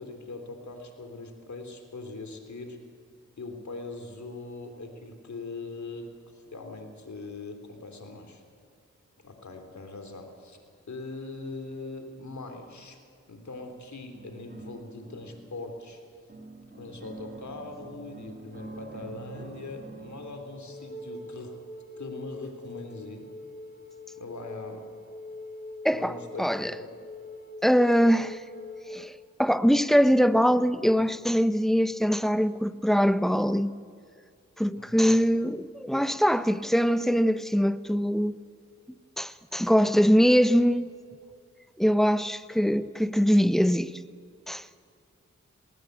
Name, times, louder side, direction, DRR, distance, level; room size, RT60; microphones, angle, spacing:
voice 1, 0.0-2.8 3.4-8.4 9.2-10.6 10.9-13.0 13.3-16.0 16.8-21.5 22.0-23.3 24.2-24.8 25.9-26.9 34.7-35.2, left 3 dB, 65° left, 3.6 m, -41 dB
sound 1, 13.5-13.8 14.1-15.8 16.3-21.4 22.4-22.5 22.9-23.0, right 3 dB, 35° right, 2.8 m, -46 dB
Wind instrument woodwind instrument, 20.7-29.1, left 2 dB, 30° left, 2.5 m, -43 dB
voice 2, 25.8-26.7 27.6-28.4 28.9-29.1 29.4-33.7 34.6-38.4 39.2-40.9 41.8-43.9 44.5-44.8, equal, ahead, 0.9 m, -23 dB
20.0 x 18.5 x 8.2 m
cardioid pair, 45°, 30 cm